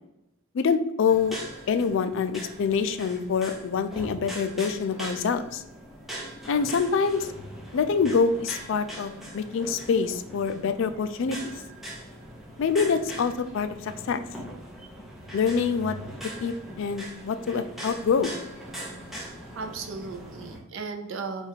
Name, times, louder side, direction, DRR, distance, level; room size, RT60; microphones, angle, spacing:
voice 1, 0.5-1.4 1.7-5.6 6.5-7.3 7.7-11.5 12.6-14.2 15.3-16.0 16.4-18.4, left 5 dB, 60° left, 10 dB, 0.3 m, -26 dB
sound 1, 1.1-20.6, equal, ahead, 0.7 m, -41 dB
voice 2, 19.5-21.5, right 4 dB, 60° right, 6 dB, 0.5 m, -36 dB
3.5 x 2.4 x 4.4 m, 0.88 s
head